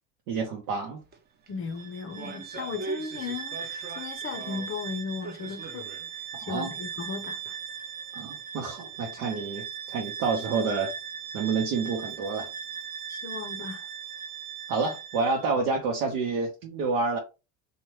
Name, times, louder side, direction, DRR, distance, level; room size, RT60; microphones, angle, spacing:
voice 1, 0.3-1.0 6.4-6.8 8.1-10.9 11.3-12.5 14.7-17.2, right 4 dB, 85° right, 0.9 m, -29 dB
sound 1, 1.0-1.2 1.5-4.8 5.2-6.1 6.4-6.5 7.2-7.3, right 3 dB, 25° right, 0.5 m, -40 dB
voice 2, 1.5-7.6 13.1-13.9, left 5 dB, 30° left, 0.5 m, -36 dB
Bowed string instrument, 1.7-15.5, right 8 dB, 70° right, 1.2 m, -39 dB
2.8 x 2.2 x 3.1 m
supercardioid pair, 90°, 42 cm